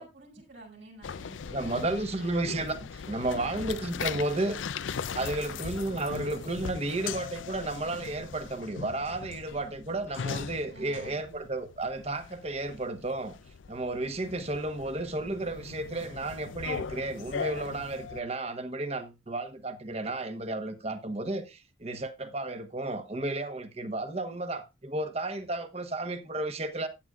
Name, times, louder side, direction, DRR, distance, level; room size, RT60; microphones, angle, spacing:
voice 1, 0.0-1.6 2.1-2.4 10.7-11.4, right 1 dB, 75° right, 5.9 m, -51 dB
sound 1, 1.0-18.2, left 6 dB, 85° left, 0.5 m, -39 dB
voice 2, 1.5-4.6 5.1-13.3 13.7-26.9, right 2 dB, 35° right, 1.1 m, -33 dB
14.5 x 9.2 x 2.4 m
head